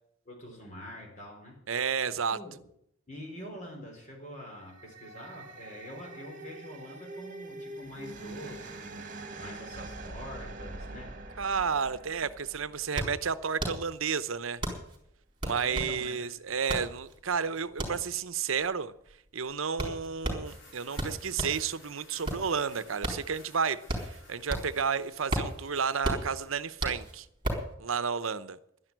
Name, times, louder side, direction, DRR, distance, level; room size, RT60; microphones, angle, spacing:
voice 1, 0.3-1.6 2.3-2.5 3.1-9.0 9.4-11.1 15.6-16.6 17.5-17.6, equal, 35° left, 1 dB, 4.1 m, -45 dB
voice 2, 1.7-2.4 11.4-14.6 15.4-18.9 19.3-27.3 27.8-28.6, right 6 dB, 75° right, 14 dB, 0.8 m, -31 dB
sound 1, 4.5-13.8, right 2 dB, 40° right, 1.9 m, -44 dB
sound 2, 12.0-12.1 12.4-21.7 22.0-24.9 25.1-27.7, right 1 dB, 25° right, 3.9 m, -35 dB
sound 3, 20.4-27.2, left 2 dB, 60° left, 5.5 m, -55 dB
11.5 x 11.0 x 9.1 m, 0.74 s
head